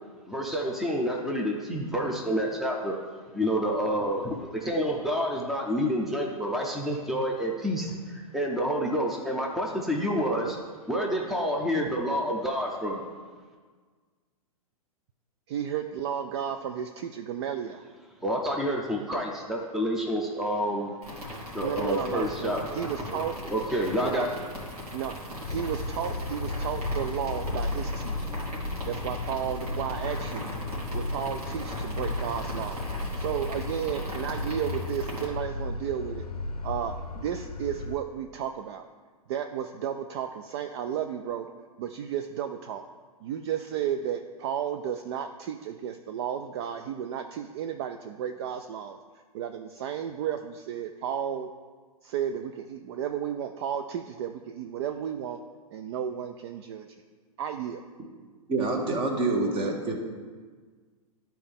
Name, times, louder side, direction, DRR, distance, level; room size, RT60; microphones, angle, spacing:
voice 1, 0.3-2.9 3.3-10.6 10.9-13.0 18.2-20.9 21.5-22.8 23.1-24.3, equal, ahead, -1 dB, 0.7 m, -28 dB
voice 2, 15.5-17.9 21.6-23.4 24.0-24.3 24.9-25.2 25.5-28.3 28.8-30.5 30.9-36.2 36.6-38.9 39.3-41.5 41.8-42.8 43.2-49.0 49.3-51.5 52.0-55.4 55.7-56.9 57.4-57.8, right 9 dB, 45° right, 7 dB, 0.4 m, -33 dB
sound 1, 21.0-35.3, equal, 80° right, 2.4 m, -38 dB
sound 2, 25.4-38.0, left 2 dB, 85° left, 0.6 m, -34 dB
voice 3, 58.5-59.9, right 3 dB, 25° right, 2 dB, 1.3 m, -26 dB
11.5 x 4.4 x 3.6 m, 1.5 s
figure-of-eight pair, 110°, 19 cm